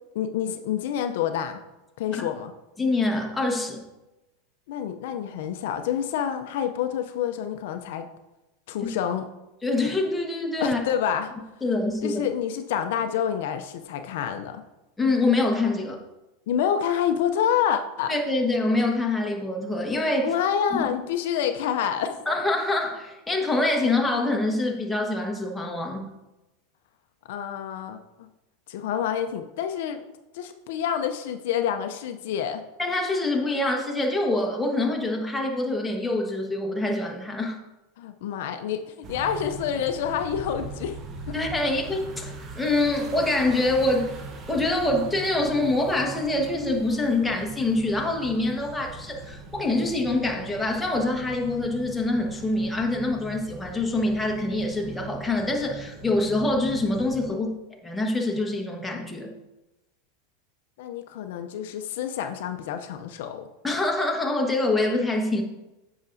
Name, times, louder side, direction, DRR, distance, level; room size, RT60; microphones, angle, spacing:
voice 1, 0.1-1.6 2.0-2.5 4.7-8.1 8.7-9.3 10.6-11.3 12.0-14.6 16.5-18.1 20.2-22.2 27.3-28.3 28.7-30.0 30.3-32.6 38.0-41.0 41.3-41.4 57.3-57.5 60.8-63.5, left 9 dB, 70° left, 7 dB, 0.5 m, -28 dB
voice 2, 2.8-3.8 8.8-8.9 9.6-10.8 11.6-12.2 15.0-16.0 18.1-20.3 20.7-20.9 22.3-26.1 32.8-37.6 41.3-44.1 44.5-57.5 57.8-59.3 63.6-65.4, left 2 dB, 10° left, 1 dB, 1.1 m, -25 dB
sound 1, 39.0-57.3, right 2 dB, 35° right, 0.9 m, -40 dB
8.1 x 5.8 x 2.6 m, 1.0 s
supercardioid pair, 125°, 0 cm